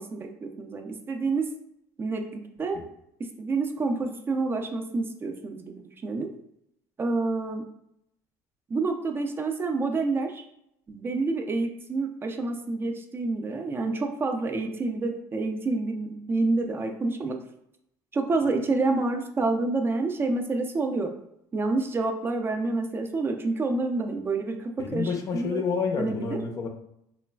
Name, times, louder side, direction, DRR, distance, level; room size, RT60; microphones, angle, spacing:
voice 1, 0.0-1.5 2.0-2.8 3.4-6.3 7.0-7.6 8.7-10.4 10.9-17.4 18.1-21.1 21.5-25.6 26.0-26.4, right 3 dB, 25° right, 4 dB, 0.4 m, -28 dB
voice 2, 24.8-26.7, left 5 dB, 40° left, 4 dB, 0.5 m, -29 dB
3.1 x 2.3 x 2.2 m, 0.78 s
supercardioid pair, 95°, 8 cm